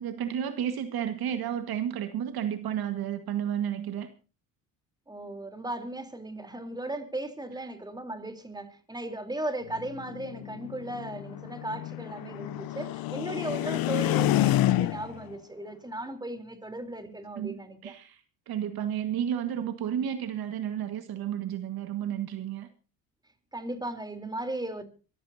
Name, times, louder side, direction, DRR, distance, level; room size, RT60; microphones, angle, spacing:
voice 1, 0.0-4.1 17.3-22.7, right 9 dB, 65° right, 1.7 m, -32 dB
voice 2, 5.1-17.9 23.5-24.8, right 1 dB, 10° right, 3.6 m, -36 dB
sound 1, 9.8-15.2, left 14 dB, 60° left, 0.7 m, -28 dB
24.0 x 14.5 x 2.8 m
supercardioid pair, 85°, 40 cm